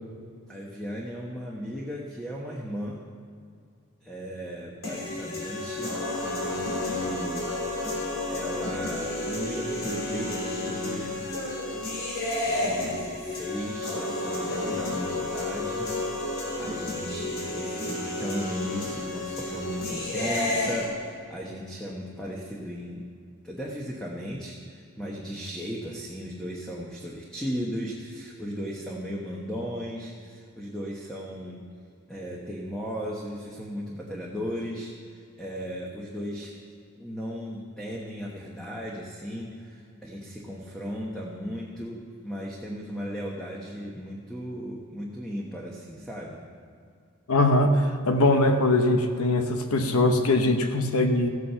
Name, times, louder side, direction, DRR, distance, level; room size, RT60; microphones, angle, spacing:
voice 1, 0.5-3.0 4.0-7.5 8.3-11.2 11.7-11.9 12.5-15.9 16.6-23.0 23.4-31.6 32.1-36.6 37.0-46.4, equal, 5° left, -3 dB, 1.1 m, -36 dB
sound 1, 4.8-20.8, left 2 dB, 70° left, 3.4 m, -31 dB
voice 2, 47.3-51.3, left 2 dB, 85° left, 6 dB, 1.0 m, -22 dB
15.0 x 8.5 x 5.7 m, 2.3 s
head